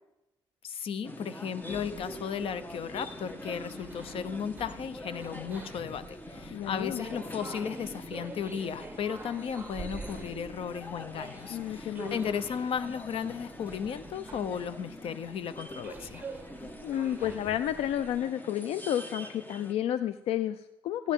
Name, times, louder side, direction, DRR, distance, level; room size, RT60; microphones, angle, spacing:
voice 1, 0.6-16.2, left 7 dB, 65° left, 13 dB, 0.8 m, -35 dB
sound 1, 1.0-19.7, left 1 dB, 20° left, 1.2 m, -45 dB
sound 2, 1.6-18.2, right 3 dB, 20° right, 1.1 m, -47 dB
voice 2, 6.5-7.1 11.5-12.2 16.8-21.1, left 11 dB, 90° left, 12 dB, 0.4 m, -31 dB
15.5 x 9.8 x 3.7 m, 0.92 s
cardioid pair, 100°, 10 cm